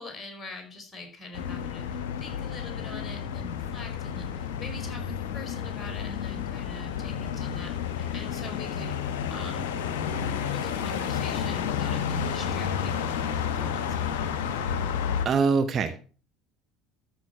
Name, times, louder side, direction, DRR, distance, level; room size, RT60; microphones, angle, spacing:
voice 1, 0.0-8.9 9.3-14.1, left 3 dB, 20° left, 4 dB, 4.5 m, -44 dB
sound 1, 1.3-15.3, left 7 dB, 65° left, 0.9 m, -31 dB
voice 2, 15.2-16.0, right 5 dB, 40° right, 10 dB, 0.9 m, -23 dB
13.5 x 6.0 x 5.7 m, 0.40 s
figure-of-eight pair, 65°, 0 cm